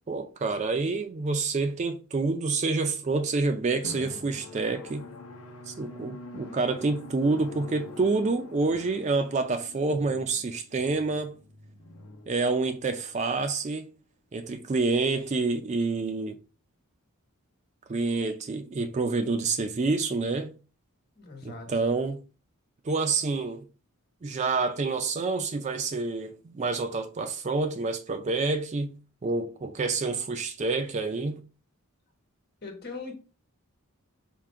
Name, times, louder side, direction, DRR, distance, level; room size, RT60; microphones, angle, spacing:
voice 1, 0.1-5.1 5.7-11.3 12.3-13.9 14.3-16.4 17.9-20.5 21.4-22.2 22.8-23.7 24.2-29.0 29.2-31.4, right 3 dB, 30° right, 0.3 m, -28 dB
Drum, 3.8-13.1, left 3 dB, 75° left, 0.7 m, -45 dB
voice 2, 21.2-21.7 32.6-33.1, left 4 dB, 45° left, 1.1 m, -40 dB
3.7 x 2.5 x 4.5 m
head